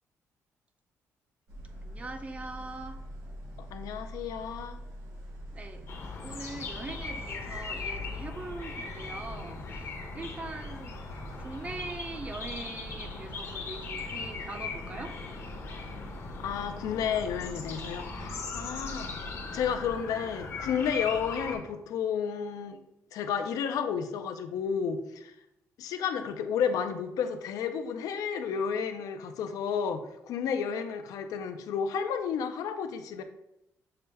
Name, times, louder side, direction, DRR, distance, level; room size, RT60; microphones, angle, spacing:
sound 1, 1.5-20.0, right 1 dB, 80° right, 1.4 m, -45 dB
voice 1, 1.8-3.0 5.5-5.9 6.2-10.9 11.4-15.2, right 3 dB, 20° right, 7 dB, 0.4 m, -42 dB
voice 2, 3.7-4.8 16.4-19.2 19.5-22.8 23.1-25.3 25.8-33.2, left 7 dB, 85° left, 8 dB, 0.4 m, -32 dB
sound 2, 5.9-21.6, left 4 dB, 50° left, 0.7 m, -39 dB
6.6 x 2.2 x 3.3 m, 0.85 s
cardioid pair, 150°, 6 cm